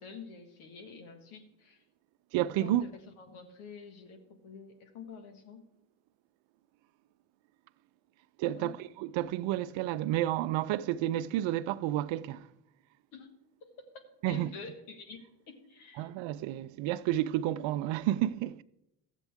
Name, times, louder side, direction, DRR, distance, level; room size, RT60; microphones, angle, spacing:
voice 1, 0.0-1.8 2.6-5.6 8.5-8.7 13.1-13.3 13.6-16.1, left 5 dB, 75° left, 1.8 m, -48 dB
voice 2, 2.3-2.8 8.4-12.5 14.2-14.5 16.0-18.6, right 14 dB, 65° right, 0.6 m, -31 dB
14.0 x 8.2 x 3.5 m
supercardioid pair, 85°, 49 cm